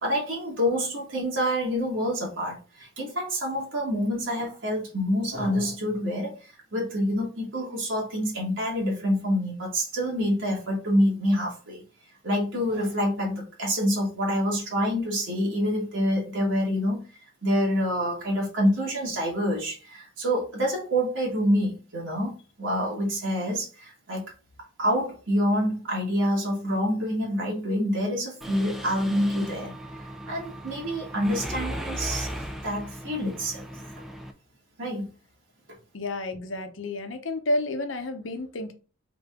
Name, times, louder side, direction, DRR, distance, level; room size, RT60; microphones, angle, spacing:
voice 1, 0.0-11.8 12.2-17.0 17.4-22.3 22.6-24.2 24.8-29.7 30.3-32.3 32.6-33.7 34.8-35.1, equal, 80° right, -2 dB, 1.8 m, -27 dB
Mechanisms, 28.4-34.3, equal, ahead, 0.5 m, -37 dB
voice 2, 35.9-38.7, left 1 dB, 90° left, 7 dB, 0.8 m, -30 dB
3.8 x 3.5 x 3.7 m, 0.35 s
head